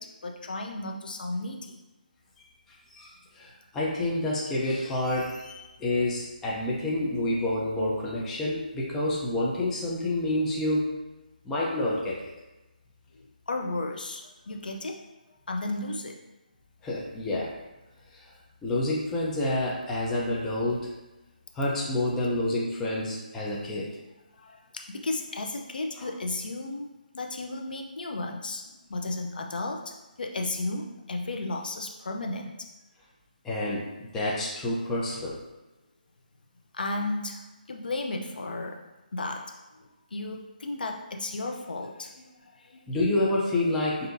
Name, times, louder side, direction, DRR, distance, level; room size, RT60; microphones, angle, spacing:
voice 1, 0.0-1.8 13.1-15.0 15.5-16.2 24.4-26.9 27.1-32.7 36.7-38.8 39.1-39.8 40.1-42.8, left 2 dB, 75° left, 2 dB, 0.6 m, -34 dB
voice 2, 2.9-10.9 11.4-12.3 16.8-17.5 18.1-18.2 18.6-20.9 21.5-23.9 26.0-26.1 33.4-35.4 42.9-44.1, left 1 dB, 10° left, -5 dB, 0.5 m, -28 dB
5.3 x 2.7 x 2.6 m, 1.1 s
figure-of-eight pair, 155°, 5 cm